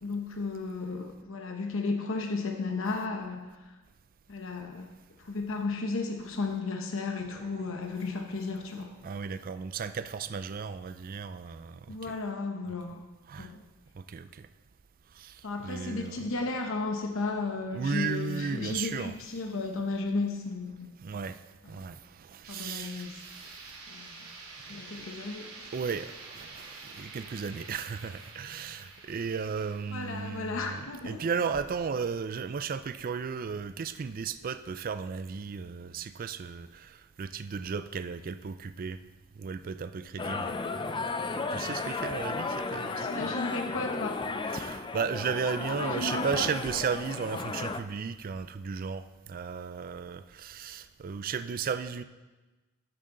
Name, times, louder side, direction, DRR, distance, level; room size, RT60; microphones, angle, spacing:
voice 1, 0.0-3.7 4.3-4.9 5.2-8.9 11.9-13.1 13.4-13.6 15.4-20.9 21.6-21.9 22.5-23.2 23.9-24.3 24.7-25.5 29.9-31.3 42.7-44.2 45.7-46.5, left 3 dB, 65° left, 3 dB, 0.9 m, -34 dB
sound 1, 7.1-11.9, right 2 dB, 60° right, 3.2 m, -57 dB
voice 2, 9.0-12.1 13.3-13.5 14.0-14.5 15.1-16.2 17.7-19.1 21.0-23.8 24.7-24.8 25.7-39.0 39.4-40.6 41.5-43.3 44.5-52.0, right 6 dB, 40° right, 12 dB, 0.4 m, -35 dB
sound 2, 22.4-32.2, right 3 dB, 85° right, 2.4 m, -48 dB
sound 3, 40.2-47.8, left 3 dB, 20° left, 0.4 m, -34 dB
12.0 x 8.4 x 3.8 m, 1.2 s
head